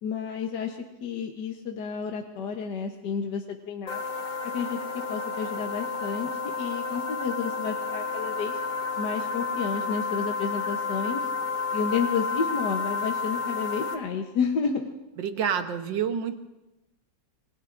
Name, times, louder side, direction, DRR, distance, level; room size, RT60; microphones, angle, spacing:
voice 1, 0.0-4.0 4.5-8.5 9.0-11.3 11.7-14.8, left 6 dB, 65° left, 2 dB, 1.6 m, -31 dB
sound 1, 3.9-13.9, left 4 dB, 30° left, 1.2 m, -31 dB
voice 2, 15.2-16.4, right 8 dB, 80° right, 7 dB, 1.7 m, -28 dB
27.0 x 21.0 x 2.6 m, 1.0 s
omnidirectional pair, 2.0 m